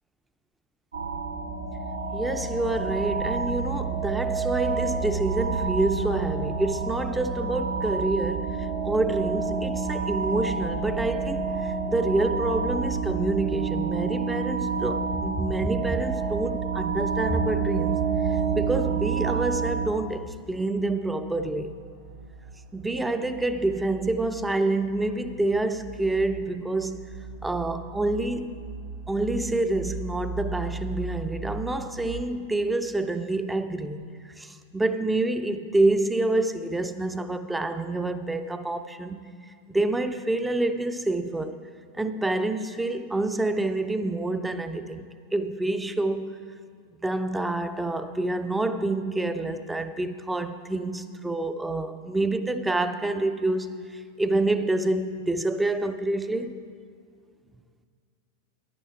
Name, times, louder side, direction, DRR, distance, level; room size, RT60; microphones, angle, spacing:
sound 1, 0.9-19.9, right 5 dB, 75° right, 1.0 m, -28 dB
voice 1, 2.1-21.7 22.7-27.0 27.4-28.6 29.1-39.2 39.7-41.6 42.0-45.0 45.3-46.4 47.0-56.6, right 2 dB, 5° right, 0.4 m, -27 dB
sound 2, 17.4-32.2, right 3 dB, 50° right, 0.6 m, -40 dB
10.5 x 8.9 x 4.7 m
figure-of-eight pair, 90°, 0 cm